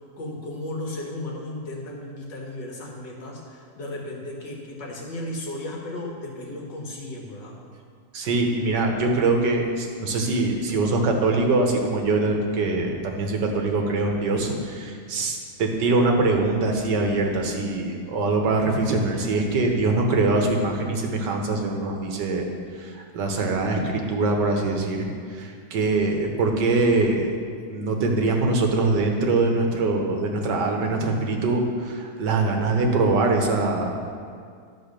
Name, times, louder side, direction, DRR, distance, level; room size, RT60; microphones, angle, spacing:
voice 1, 0.2-7.6, left 1 dB, 85° left, -2 dB, 2.3 m, -35 dB
voice 2, 8.1-22.5 22.8-27.3 27.7-34.1, right 3 dB, 75° right, 2 dB, 1.7 m, -23 dB
11.5 x 4.6 x 6.7 m, 2.2 s
omnidirectional pair, 1.9 m